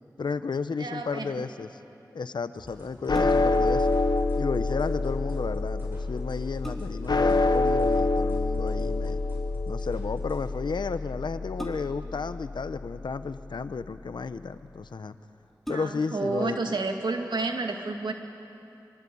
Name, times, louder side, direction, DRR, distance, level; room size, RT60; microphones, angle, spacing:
voice 1, 0.2-1.8 2.1-3.9 4.3-9.2 9.7-15.1 15.7-16.8, left 4 dB, 85° left, 12 dB, 0.8 m, -33 dB
voice 2, 0.8-1.4 15.7-18.1, right 3 dB, 85° right, 3 dB, 2.3 m, -30 dB
sound 1, 2.5-10.5, equal, 30° right, 7.6 m, -49 dB
sound 2, 3.1-13.5, left 3 dB, 65° left, 1.0 m, -27 dB
sound 3, 3.1-3.7 5.7-5.8 6.3-7.2 8.7-9.1 11.6-12.2 13.1-13.8 14.6-14.7 15.0-15.1 15.6-16.3 16.7-16.8, equal, 5° left, 4.2 m, -40 dB
24.5 x 24.0 x 8.6 m, 2.8 s
wide cardioid pair, 50°, 8 cm